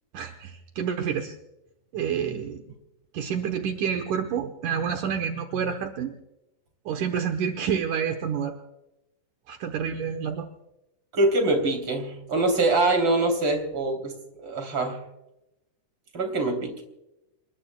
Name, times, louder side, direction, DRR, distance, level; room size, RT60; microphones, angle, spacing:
voice 1, 0.1-1.4 1.9-2.7 3.1-6.2 6.9-8.6 9.5-10.5, right 7 dB, 75° right, 5 dB, 2.6 m, -28 dB
voice 2, 11.1-15.0 16.1-16.8, right 2 dB, 35° right, 4 dB, 4.0 m, -24 dB
28.0 x 21.0 x 2.3 m, 0.92 s
omnidirectional pair, 3.8 m